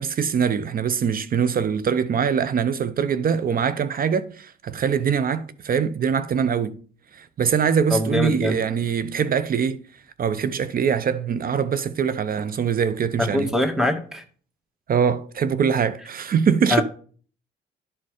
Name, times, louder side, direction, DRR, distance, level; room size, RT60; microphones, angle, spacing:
voice 1, 0.0-6.8 7.1-9.8 10.2-13.5 14.9-16.8, right 7 dB, 45° right, 0.6 m, -23 dB
voice 2, 7.9-8.6 13.2-14.2 16.7-16.8, left 1 dB, ahead, 1.6 m, -23 dB
11.0 x 4.3 x 4.9 m
cardioid pair, 90°, 20 cm